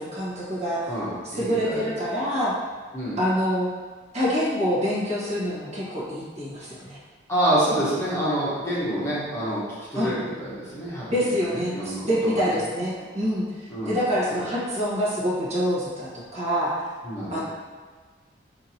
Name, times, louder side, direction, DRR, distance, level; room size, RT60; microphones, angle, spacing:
voice 1, 0.0-0.9 1.2-2.5 3.2-3.7 4.1-7.0 9.9-10.1 11.1-16.8 17.3-17.4, equal, 35° right, -8 dB, 1.1 m, -26 dB
voice 2, 0.9-1.9 2.9-3.2 7.3-9.6 9.9-12.6 13.7-14.0 14.3-14.4 17.0-17.4, right 1 dB, 15° left, -9 dB, 1.0 m, -27 dB
5.7 x 2.6 x 2.8 m, 1.5 s
head